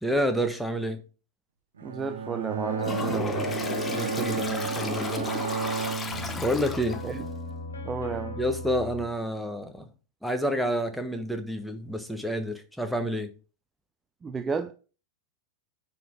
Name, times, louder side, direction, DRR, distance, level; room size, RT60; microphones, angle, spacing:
voice 1, 0.0-1.0 3.9-5.3 6.4-7.0 8.4-9.9 10.2-13.3, equal, ahead, 1.2 m, -29 dB
voice 2, 1.8-3.6 7.0-7.2 7.8-8.4 14.2-14.7, right 5 dB, 20° right, 0.6 m, -32 dB
Bowed string instrument, 1.8-7.0, right 6 dB, 65° right, 1.0 m, -33 dB
sound 1, 2.6-9.1, left 2 dB, 75° left, 2.0 m, -37 dB
Toilet flush, 2.8-7.2, left 4 dB, 15° left, 0.9 m, -34 dB
9.8 x 4.1 x 4.6 m
figure-of-eight pair, 90°, 0 cm